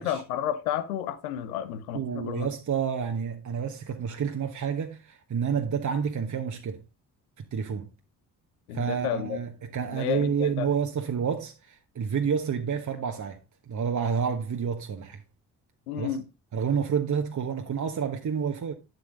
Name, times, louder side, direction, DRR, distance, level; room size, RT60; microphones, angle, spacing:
voice 1, 0.0-2.5 8.7-9.4 9.9-10.7 15.9-16.2, left 10 dB, 85° left, 1.0 m, -31 dB
voice 2, 1.9-6.8 7.4-7.9 8.7-13.4 13.7-15.2 16.0-16.2 16.5-18.7, right 7 dB, 45° right, 1.3 m, -29 dB
10.5 x 8.0 x 3.5 m
hypercardioid pair, 45°, 42 cm